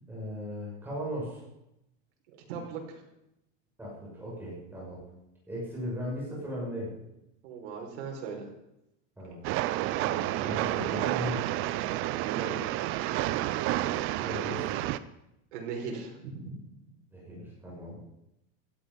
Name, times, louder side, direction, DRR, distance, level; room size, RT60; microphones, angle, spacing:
voice 1, 0.1-1.4 3.8-5.1 5.5-6.9 9.2-9.4 10.0-11.5 13.7-14.8 17.1-18.0, equal, 5° right, -6 dB, 6.2 m, -37 dB
voice 2, 2.5-3.0 7.4-8.4 12.2-12.6 14.4-14.6 15.5-16.7, right 5 dB, 80° right, 0 dB, 5.1 m, -38 dB
Train, 9.4-15.0, right 15 dB, 40° right, 0.6 m, -30 dB
16.5 x 12.5 x 5.4 m, 0.85 s
supercardioid pair, 165°, 34 cm